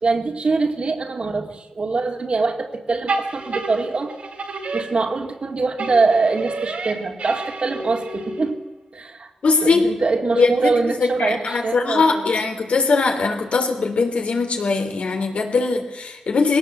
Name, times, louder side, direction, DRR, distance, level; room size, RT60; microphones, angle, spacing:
voice 1, 0.0-4.1 4.7-8.6 8.9-9.3 9.6-12.3, right 3 dB, 55° right, 4 dB, 2.4 m, -23 dB
sound 1, 3.1-5.4 5.8-8.6, right 3 dB, 80° right, 2.7 m, -30 dB
voice 2, 9.4-9.8 10.4-10.7 11.0-16.6, left 4 dB, 80° left, 4 dB, 3.3 m, -20 dB
20.0 x 17.5 x 8.0 m, 1.0 s
wide cardioid pair, 85°, 2 cm